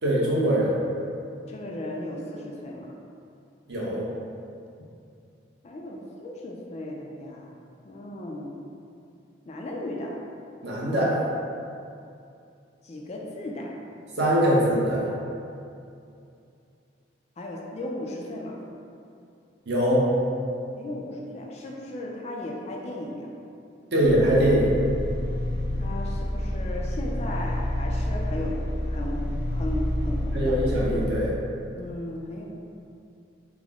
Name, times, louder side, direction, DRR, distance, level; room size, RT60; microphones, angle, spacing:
voice 1, 0.0-0.8 3.7-4.1 10.6-11.2 14.2-15.1 19.7-20.1 23.9-24.7 30.3-31.3, equal, 60° right, -6 dB, 0.8 m, -22 dB
voice 2, 1.5-2.9 5.6-7.5 7.8-8.6 9.5-10.2 12.8-13.8 17.4-18.6 20.8-23.3 25.8-30.6 31.8-32.5, left 1 dB, 35° left, -1 dB, 0.3 m, -36 dB
sound 1, 24.0-31.1, left 1 dB, 85° left, 1.0 m, -29 dB
3.5 x 2.0 x 3.5 m, 2.5 s
head